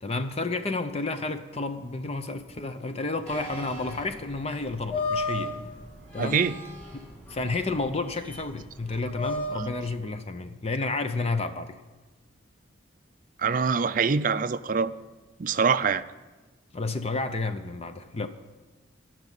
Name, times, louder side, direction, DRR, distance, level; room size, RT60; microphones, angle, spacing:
voice 1, 0.0-5.5 6.1-6.4 7.3-11.8 16.7-18.3, left 3 dB, 30° left, 0.6 m, -31 dB
sound 1, 3.3-9.9, left 2 dB, 5° left, 1.9 m, -35 dB
voice 2, 6.2-6.6 13.4-14.9 15.4-16.1, right 5 dB, 40° right, 0.4 m, -24 dB
14.5 x 6.1 x 9.9 m
head